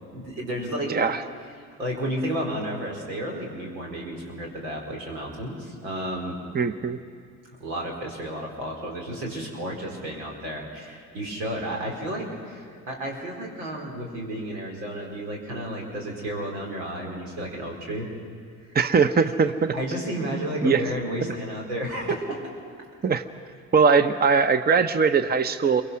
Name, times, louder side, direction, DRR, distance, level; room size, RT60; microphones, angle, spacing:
voice 1, 0.1-0.9 1.8-6.4 7.6-18.1 19.7-22.4, right 1 dB, 80° right, -1 dB, 4.6 m, -32 dB
voice 2, 0.9-1.2 6.5-7.0 18.7-19.7 20.6-20.8 23.0-23.2 23.7-25.8, right 5 dB, 20° right, 11 dB, 0.9 m, -20 dB
28.0 x 23.5 x 6.3 m, 2.3 s
hypercardioid pair, 55°, 50 cm